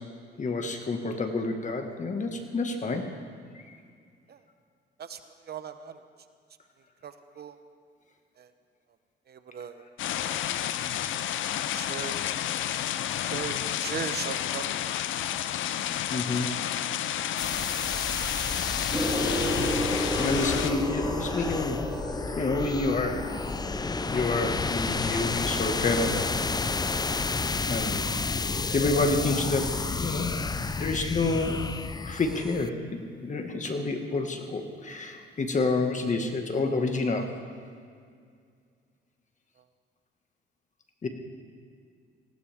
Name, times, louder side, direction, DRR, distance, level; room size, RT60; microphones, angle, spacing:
voice 1, 0.4-3.1 3.7-3.8 16.1-16.5 20.2-21.8 22.4-23.2 24.1-26.3 27.7-28.1 28.7-30.4 30.8-31.6 32.0-37.3 41.0-41.1, left 3 dB, 40° left, 4 dB, 1.8 m, -28 dB
voice 2, 5.5-6.0 7.0-7.6 8.4-8.5 9.3-9.8 11.7-12.2 13.2-14.8, right 7 dB, 55° right, 10 dB, 0.9 m, -38 dB
sound 1, 10.0-20.7, left 11 dB, 75° left, 0.6 m, -31 dB
sound 2, 17.4-32.7, left 4 dB, 20° left, 0.5 m, -31 dB
Gong, 18.9-28.7 29.6-29.9, equal, 10° right, 2.4 m, -34 dB
19.5 x 16.5 x 3.6 m, 2.2 s
cardioid pair, 90°, 20 cm